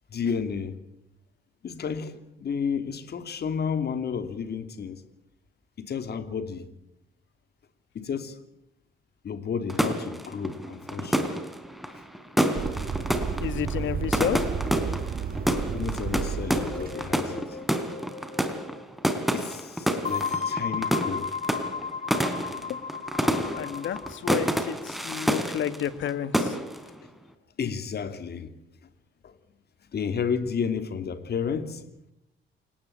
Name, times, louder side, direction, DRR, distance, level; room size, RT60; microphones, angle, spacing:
voice 1, 0.1-0.8 1.6-5.0 5.8-6.7 7.9-8.4 9.2-11.3 15.7-17.6 19.3-21.3 27.6-28.5 29.2-29.3 29.9-31.8, left 6 dB, 55° left, 3.0 m, -32 dB
sound 1, 9.7-26.1 26.3-26.9, equal, ahead, 3.9 m, -28 dB
sound 2, 12.6-17.2, right 6 dB, 50° right, 2.2 m, -32 dB
voice 2, 13.4-14.5 22.6-22.7 23.2-26.6, left 9 dB, 75° left, 2.0 m, -31 dB
sound 3, 16.5-18.8 20.0-24.3, left 5 dB, 35° left, 1.7 m, -34 dB
28.5 x 18.5 x 8.9 m
cardioid pair, 90°, 20 cm